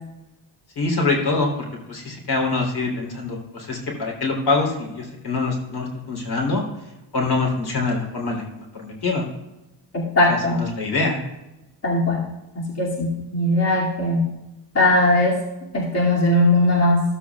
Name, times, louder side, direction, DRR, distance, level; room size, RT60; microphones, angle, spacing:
voice 1, 0.7-1.5 1.9-6.6 7.1-9.3 10.3-11.2, left 3 dB, 55° left, -1 dB, 3.5 m, -24 dB
voice 2, 9.9-10.6 11.8-12.2 12.5-14.3 14.7-15.4 15.7-17.0, left 1 dB, 35° left, -6 dB, 2.5 m, -19 dB
15.0 x 8.2 x 2.4 m, 0.97 s
cardioid pair, 100°, 45 cm